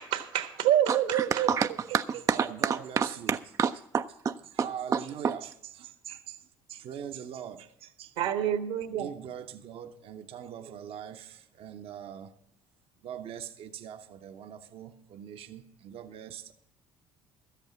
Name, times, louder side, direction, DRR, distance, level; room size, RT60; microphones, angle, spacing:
voice 1, 0.0-1.5 8.2-9.1, right 11 dB, 75° right, 1.3 m, -27 dB
voice 2, 0.9-5.3, right 6 dB, 30° right, 0.4 m, -29 dB
voice 3, 2.3-3.4 4.5-6.4 6.7-8.1 8.9-12.3 13.0-16.5, right 9 dB, 55° right, 0.8 m, -42 dB
13.5 x 8.2 x 6.0 m
hypercardioid pair, 60°, 12 cm